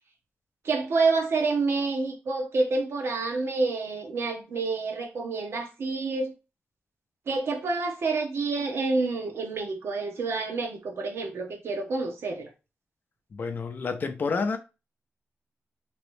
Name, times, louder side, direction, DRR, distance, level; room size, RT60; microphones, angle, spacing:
voice 1, 0.6-6.3 7.3-12.5, right 3 dB, 65° right, 0.9 m, -28 dB
voice 2, 13.3-14.6, left 4 dB, 45° left, 0.5 m, -29 dB
3.0 x 3.0 x 3.1 m
wide cardioid pair, 145°, 5 cm